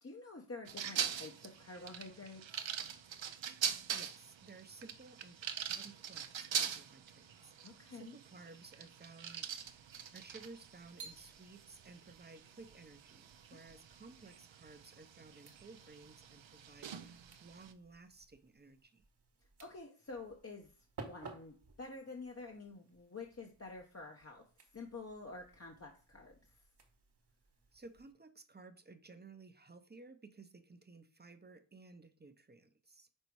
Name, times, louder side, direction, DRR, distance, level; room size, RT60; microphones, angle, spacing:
voice 1, 0.0-2.8 7.6-8.2 13.5-13.6 19.6-20.7 21.0-24.4 24.7-26.6, left 3 dB, 30° left, 0.8 m, -49 dB
sound 1, 0.7-17.7, right 8 dB, 70° right, 0.6 m, -43 dB
voice 2, 3.6-19.0 27.7-33.1, right 3 dB, 20° right, 0.7 m, -56 dB
sound 2, 9.5-28.1, right 4 dB, 55° right, 1.2 m, -58 dB
5.5 x 4.0 x 4.6 m
wide cardioid pair, 65°, 47 cm